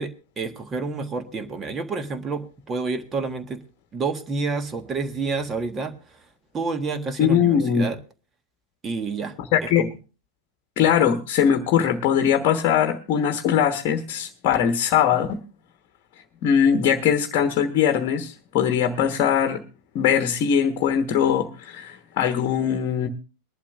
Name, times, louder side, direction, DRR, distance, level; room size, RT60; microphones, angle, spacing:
voice 1, 0.0-3.6 3.9-6.3 6.5-8.0 8.8-9.4 9.6-9.9, right 4 dB, 20° right, 9 dB, 1.4 m, -29 dB
voice 2, 7.2-7.9 9.5-9.9 10.8-15.4 16.4-19.6 19.9-23.1, left 8 dB, 40° left, 6 dB, 1.2 m, -21 dB
22.5 x 11.5 x 2.5 m, 0.34 s
figure-of-eight pair, 90°, 0 cm